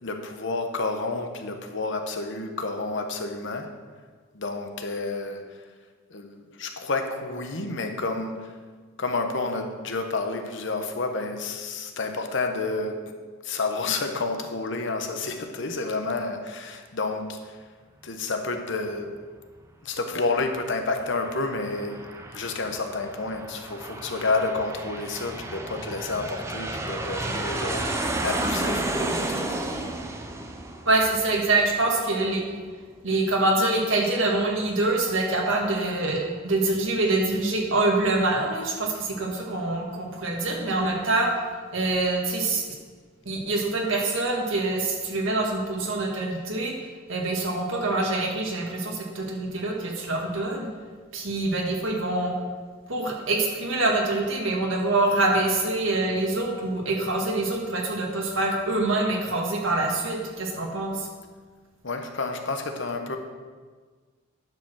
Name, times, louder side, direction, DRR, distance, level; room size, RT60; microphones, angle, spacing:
voice 1, 0.0-3.7 4.3-5.4 6.1-8.5 9.0-12.9 13.4-17.6 18.0-19.1 19.8-22.1 22.3-29.9 61.8-63.2, left 3 dB, 65° left, 5 dB, 1.0 m, -30 dB
Aircraft, 20.9-32.1, right 2 dB, 15° right, 0.7 m, -32 dB
voice 2, 30.9-32.4 33.0-41.3 41.7-42.6 43.3-46.7 47.1-50.7 51.1-52.3 52.9-61.1, right 2 dB, 70° right, 0 dB, 1.8 m, -25 dB
10.5 x 5.0 x 6.2 m, 1.5 s
head